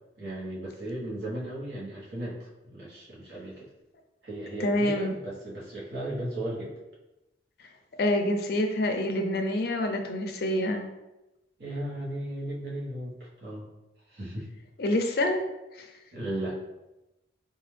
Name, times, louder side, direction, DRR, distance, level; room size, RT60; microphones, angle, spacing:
voice 1, 0.2-3.7 4.2-6.8 11.6-13.7 14.1-14.5 16.1-16.6, right 1 dB, 60° right, -5 dB, 1.1 m, -36 dB
voice 2, 4.6-5.1 8.0-10.9 14.8-15.4 15.8-15.9, left 1 dB, 55° left, 5 dB, 0.4 m, -27 dB
3.9 x 2.3 x 3.2 m, 0.97 s
head